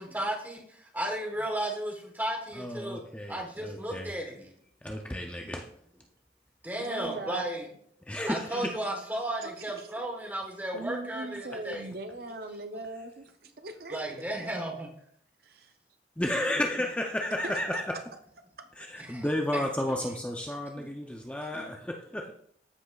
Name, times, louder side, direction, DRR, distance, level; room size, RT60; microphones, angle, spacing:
voice 1, 0.0-3.0 3.3-4.5 6.6-7.7 8.3-11.8 13.9-14.9 19.0-19.2 20.8-21.2 21.5-21.7, right 1 dB, 10° right, 1 dB, 1.2 m, -34 dB
voice 2, 2.5-4.1 4.8-5.7 8.1-8.7 16.2-18.0 18.8-22.3, left 1 dB, 5° left, 2 dB, 0.4 m, -32 dB
voice 3, 6.8-7.4 8.5-8.7 9.4-10.0 10.7-14.6 15.4-15.7 17.4-17.8 21.4-21.5, right 2 dB, 55° right, 7 dB, 0.5 m, -41 dB
14.0 x 5.2 x 2.3 m, 0.66 s
head